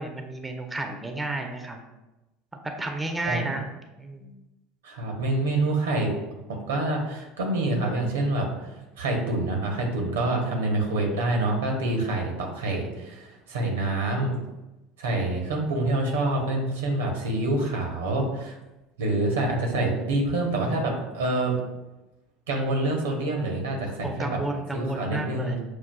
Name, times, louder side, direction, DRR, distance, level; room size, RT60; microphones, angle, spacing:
voice 1, 0.0-1.8 2.6-3.6 4.0-4.4 24.0-25.6, right 2 dB, 15° right, 4 dB, 0.5 m, -32 dB
voice 2, 4.8-6.1 6.5-8.5 9.0-14.3 15.0-18.6 19.0-21.6 22.5-24.4 24.7-25.6, right 2 dB, 85° right, 1 dB, 0.8 m, -26 dB
6.2 x 2.3 x 2.2 m, 1.0 s
hypercardioid pair, 80°, 0 cm